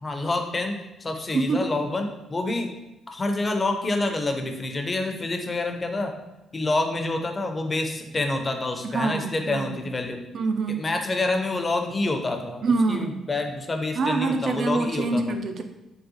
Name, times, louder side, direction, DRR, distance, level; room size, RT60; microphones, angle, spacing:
voice 1, 0.0-2.7 3.1-6.1 6.5-10.2 10.8-15.3, left 2 dB, 30° left, 4 dB, 0.5 m, -27 dB
voice 2, 1.3-1.7 8.8-9.8 10.3-10.9 12.6-13.2 13.9-15.6, right 3 dB, 50° right, 6 dB, 0.3 m, -25 dB
3.8 x 2.1 x 2.8 m, 0.95 s
figure-of-eight pair, 40°, 0 cm